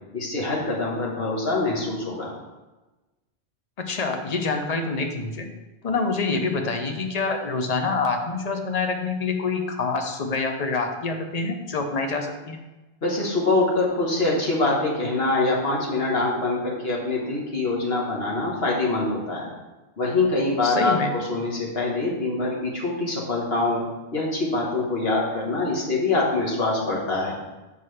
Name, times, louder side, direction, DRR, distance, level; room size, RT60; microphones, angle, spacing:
voice 1, 0.1-2.3 13.0-19.5 20.0-23.8 24.1-27.3, left 2 dB, 60° left, -3 dB, 1.6 m, -24 dB
voice 2, 3.8-5.5 5.8-12.6 20.6-21.1, left 4 dB, 40° left, 4 dB, 0.7 m, -26 dB
7.3 x 5.4 x 3.3 m, 1.1 s
omnidirectional pair, 1.2 m